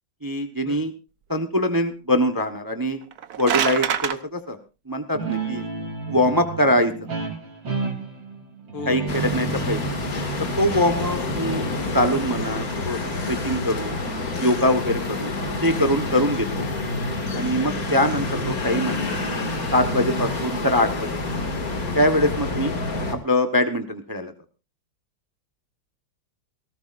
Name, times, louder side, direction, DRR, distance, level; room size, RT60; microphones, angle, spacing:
voice 1, 0.2-0.9 1.3-3.0 3.4-4.6 4.9-5.6 6.1-6.9 8.9-9.9 10.4-11.6 11.9-14.0 14.4-15.3 15.6-16.7 17.3-19.1 19.7-21.4 21.9-22.7 23.1-24.3, left 1 dB, 15° right, 8 dB, 0.9 m, -23 dB
sound 1, 3.0-4.2, right 9 dB, 60° right, 1.3 m, -24 dB
Guitar, 5.1-12.3, right 4 dB, 85° right, 3.8 m, -32 dB
voice 2, 8.7-9.6, left 4 dB, 80° left, 6 dB, 2.6 m, -37 dB
Road Noise Motorbike Construction Bangkok, 9.1-23.1, left 2 dB, 50° left, 2.8 m, -28 dB
19.0 x 17.5 x 2.6 m, 0.31 s
omnidirectional pair, 2.0 m